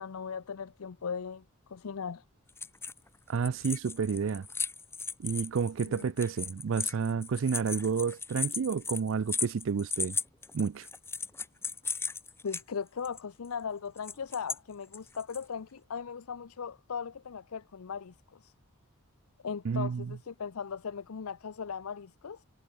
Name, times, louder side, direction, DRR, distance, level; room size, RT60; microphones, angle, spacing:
voice 1, 0.0-1.4 1.7-2.2 5.8-6.1 12.4-18.5 19.4-22.4, left 6 dB, 85° left, 0.6 m, -38 dB
sound 1, 2.5-3.1 3.4-12.6 13.0-13.2 14.0-14.6 14.9-15.4, left 4 dB, 10° left, 1.7 m, -36 dB
voice 2, 3.3-4.5 5.2-10.2 10.5-10.9 19.6-20.2, right 6 dB, 60° right, 0.4 m, -30 dB
head